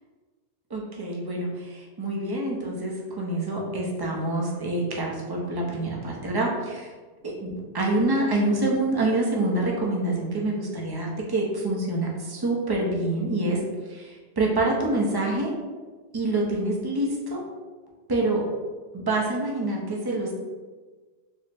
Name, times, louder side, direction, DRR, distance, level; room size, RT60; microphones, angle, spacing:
voice 1, 0.7-6.9 7.4-13.6 13.9-15.5 16.1-17.4 18.1-18.4 18.9-20.4, right 2 dB, 30° right, -2 dB, 0.5 m, -26 dB
4.6 x 2.1 x 3.3 m, 1.4 s
omnidirectional pair, 1.2 m